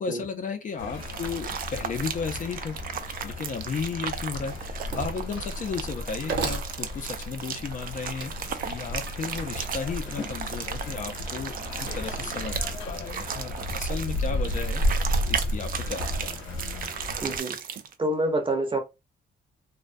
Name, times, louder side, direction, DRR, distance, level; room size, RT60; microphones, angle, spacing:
voice 1, 0.0-2.8 3.2-14.8 15.3-16.4, left 5 dB, 40° left, 0.5 m, -34 dB
sound 1, 0.8-17.4, left 1 dB, 75° left, 0.8 m, -34 dB
Wood, 0.9-12.8, right 2 dB, 65° right, 0.7 m, -39 dB
sound 2, 1.0-17.9, right 7 dB, 45° right, 0.4 m, -36 dB
voice 2, 17.2-17.6 18.0-18.8, right 1 dB, 25° right, 0.7 m, -27 dB
2.3 x 2.2 x 2.5 m
cardioid pair, 90°, 20 cm